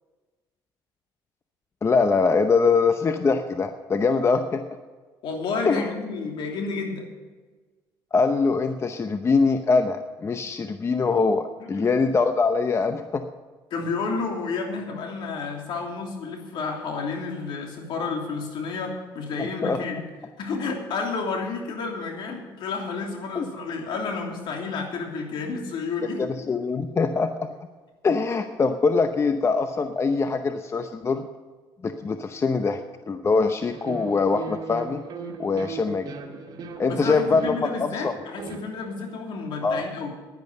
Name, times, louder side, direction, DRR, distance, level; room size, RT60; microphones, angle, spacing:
voice 1, 1.8-4.6 5.6-5.9 8.1-13.2 19.4-19.8 23.3-23.5 26.2-27.5 28.0-31.2 31.8-32.8 33.1-35.0 35.4-36.1 36.8-38.1 39.6-39.8, left 4 dB, 30° left, 8 dB, 0.8 m, -23 dB
voice 2, 5.2-7.0 11.8-11.9 13.7-20.1 20.4-26.3 36.5-36.6 36.9-40.1, left 4 dB, 65° left, 1 dB, 3.0 m, -31 dB
sound 1, 33.7-38.9, right 4 dB, 55° right, 2.1 m, -38 dB
10.5 x 10.5 x 6.8 m, 1.4 s
supercardioid pair, 85°, 9 cm